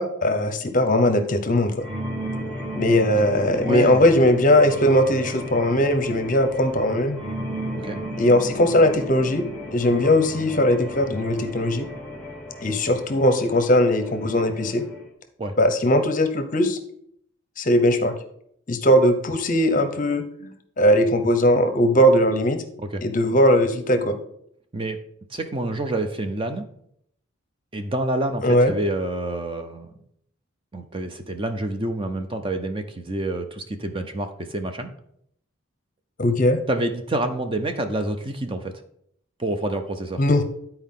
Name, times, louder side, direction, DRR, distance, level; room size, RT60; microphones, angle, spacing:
voice 1, 0.0-1.9 2.7-7.2 8.2-9.4 9.7-11.9 12.6-14.9 15.6-16.8 17.6-18.1 18.7-20.5 20.8-22.6 23.0-24.2 28.4-28.7 36.2-36.6 40.2-40.4, left 1 dB, 40° left, 8 dB, 0.8 m, -19 dB
sound 1, 1.8-15.1, equal, 5° left, 1.0 m, -35 dB
voice 2, 3.3-4.2 7.7-8.0 15.4-15.5 22.9-23.0 24.7-25.0 25.3-26.7 27.7-30.0 30.7-34.9 36.7-38.7 39.4-40.2, right 1 dB, 25° right, 6 dB, 0.6 m, -28 dB
11.5 x 4.5 x 3.7 m, 0.70 s
head